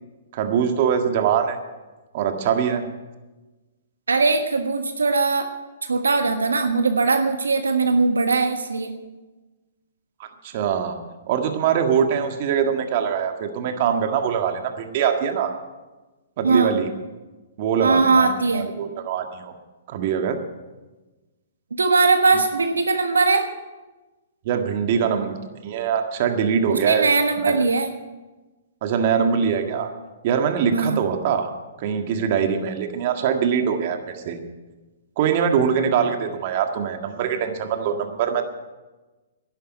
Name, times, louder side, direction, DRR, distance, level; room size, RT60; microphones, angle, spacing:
voice 1, 0.3-1.6 2.1-2.8 10.2-11.0 11.3-15.5 16.4-16.9 17.6-19.5 19.9-20.4 24.4-27.1 27.4-27.6 28.8-29.9 30.2-31.5 31.8-34.4 35.2-38.4, right 7 dB, 50° right, 5 dB, 1.8 m, -23 dB
voice 2, 4.1-5.5 5.9-8.9 16.4-16.7 17.8-18.7 21.8-23.5 26.7-27.9 30.7-31.0, right 4 dB, 90° right, 6 dB, 1.4 m, -20 dB
11.5 x 11.5 x 9.0 m, 1.2 s
hypercardioid pair, 130°, 0 cm